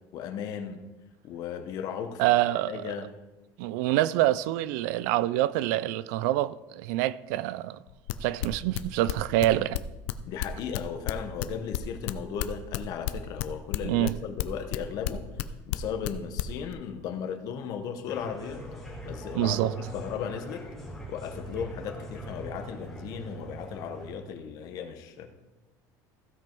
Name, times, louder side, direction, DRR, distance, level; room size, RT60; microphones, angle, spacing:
voice 1, 0.1-0.8 1.2-2.3 2.7-3.1 10.2-15.3 15.7-18.6 19.0-19.6 19.9-20.7 21.1-25.3, left 7 dB, 45° left, 1.0 m, -36 dB
voice 2, 2.2-2.9 3.6-7.8 8.2-9.8 13.8-14.1 19.3-19.7, right 15 dB, 85° right, 0.4 m, -26 dB
sound 1, 7.9-11.5 11.7-15.4 15.7-16.1 16.4-16.7, left 15 dB, 85° left, 0.6 m, -30 dB
sound 2, 18.1-24.1, right 1 dB, 5° left, 1.8 m, -41 dB
15.5 x 5.4 x 4.5 m
cardioid pair, 175°, 9 cm